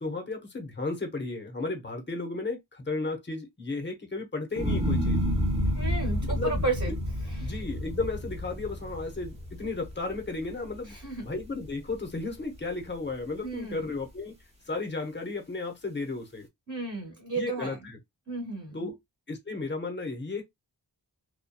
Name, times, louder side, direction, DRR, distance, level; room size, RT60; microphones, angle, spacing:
voice 1, 0.0-5.2 6.3-6.6 7.4-10.9 11.2-14.3 14.7-16.5 17.4-18.0 18.7-18.9 19.3-20.4, left 3 dB, 25° left, 0.8 m, -34 dB
sound 1, 4.6-10.9 11.3-11.9, equal, 15° right, 0.9 m, -30 dB
voice 2, 5.7-7.0 7.4-7.6 10.9-11.2 13.4-13.9 16.7-17.9 18.3-18.9, right 3 dB, 30° right, 1.3 m, -33 dB
2.7 x 2.2 x 2.2 m
wide cardioid pair, 70°, 45 cm